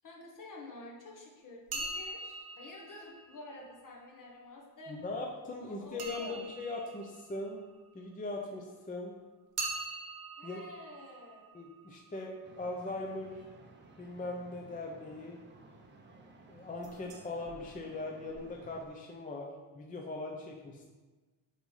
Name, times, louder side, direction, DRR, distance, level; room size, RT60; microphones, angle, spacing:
voice 1, 0.0-5.0 5.6-6.4 10.4-11.6, left 2 dB, 40° left, -1 dB, 1.2 m, -49 dB
sound 1, 1.7-4.4 6.0-8.7 9.6-13.4 16.8-17.2 17.5-17.6 18.3-18.4 18.6-18.7, right 2 dB, 50° right, 1.2 m, -44 dB
voice 2, 4.9-7.6 7.9-9.2 10.4-10.6 11.5-13.4 14.0-15.4 16.5-20.8, left 2 dB, 20° left, 0 dB, 0.4 m, -40 dB
sound 2, 12.4-18.9, right 2 dB, 25° right, 0.6 m, -57 dB
5.3 x 4.0 x 4.7 m, 1.3 s
cardioid pair, 160°, 47 cm